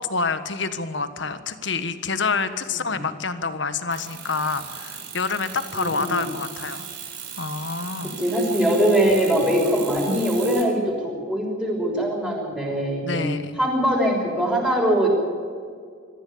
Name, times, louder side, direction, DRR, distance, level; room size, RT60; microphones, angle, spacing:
voice 1, 0.0-6.9 7.4-8.1 13.0-13.6, left 4 dB, 65° left, 10 dB, 1.5 m, -27 dB
sound 1, 3.9-10.6, right 7 dB, 55° right, 4.2 m, -37 dB
voice 2, 5.7-6.3 8.0-13.3 13.6-15.1, equal, 5° right, -2 dB, 6.1 m, -22 dB
24.0 x 15.0 x 8.7 m, 2.1 s
head